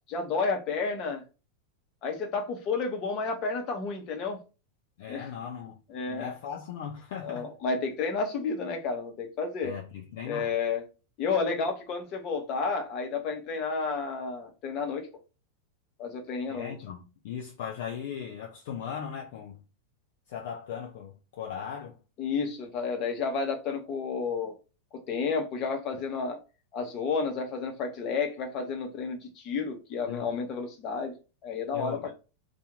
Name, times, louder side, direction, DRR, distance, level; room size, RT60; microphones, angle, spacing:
voice 1, 0.1-1.2 2.0-4.4 5.1-5.3 5.9-6.3 7.2-9.7 10.2-10.8 11.2-15.1 16.0-16.7 22.2-24.5 25.1-26.4 26.7-31.2 31.4-32.1, left 4 dB, 35° left, 0.9 m, -31 dB
voice 2, 5.0-5.8 6.1-7.5 9.6-10.5 16.5-19.6 20.3-22.0 30.0-30.3 31.7-32.1, left 8 dB, 50° left, 0.5 m, -38 dB
2.7 x 2.5 x 3.6 m
figure-of-eight pair, 90°, 0 cm